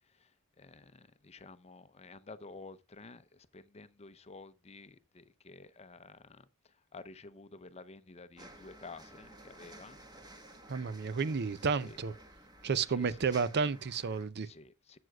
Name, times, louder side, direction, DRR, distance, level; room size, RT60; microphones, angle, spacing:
voice 1, 0.0-10.0 11.8-12.0 12.9-13.4 14.4-15.0, left 3 dB, 30° left, 0.6 m, -52 dB
sound 1, 8.4-14.3, right 1 dB, 20° right, 1.4 m, -54 dB
voice 2, 10.7-12.1 12.6-14.5, right 5 dB, 50° right, 0.6 m, -31 dB
12.5 x 7.8 x 2.3 m
head